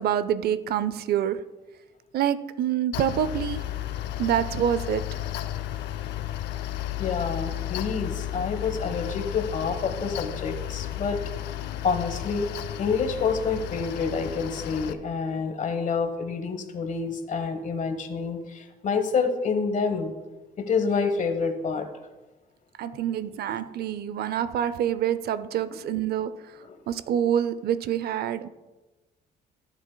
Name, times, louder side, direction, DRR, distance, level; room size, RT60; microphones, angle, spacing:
voice 1, 0.0-1.5 2.1-3.6 4.2-5.1 22.8-26.5 26.9-28.5, right 9 dB, 65° right, 0.5 m, -26 dB
Mechanical fan, 2.9-14.9, left 13 dB, 90° left, 0.5 m, -33 dB
voice 2, 7.0-11.2 11.8-12.5 12.8-20.1 20.6-21.9 25.7-25.8 26.6-26.7, left 5 dB, 45° left, 1.2 m, -28 dB
15.5 x 7.3 x 2.2 m
cardioid pair, 100°, 17 cm